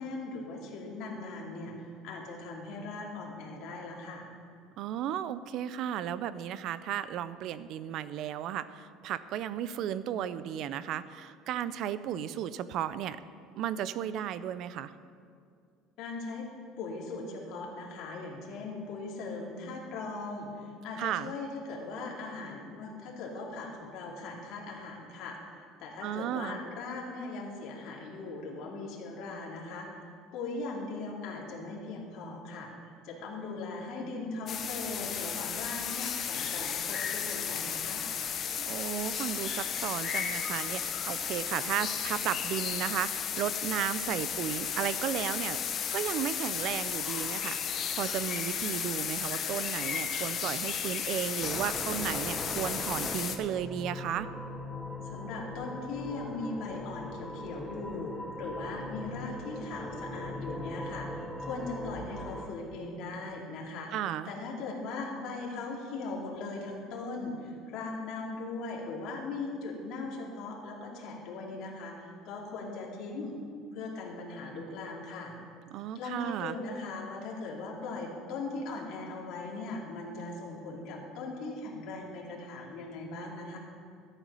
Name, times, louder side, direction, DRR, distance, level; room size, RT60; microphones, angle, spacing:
voice 1, 0.0-4.3 16.0-16.5 16.8-25.4 25.8-30.0 30.3-38.0 55.0-63.9 64.2-73.4 73.7-75.3 75.9-83.6, left 3 dB, 55° left, -2 dB, 2.6 m, -39 dB
voice 2, 4.8-13.2 13.6-14.9 21.0-21.3 26.0-26.6 38.7-45.6 45.9-54.3 63.9-64.3 75.7-76.5, right 10 dB, 50° right, 15 dB, 0.5 m, -34 dB
sound 1, 34.5-53.4, left 7 dB, 35° left, 0.9 m, -34 dB
sound 2, 51.4-62.5, left 1 dB, ahead, 1.0 m, -40 dB
13.5 x 9.1 x 5.5 m, 2.2 s
cardioid pair, 160°, 0 cm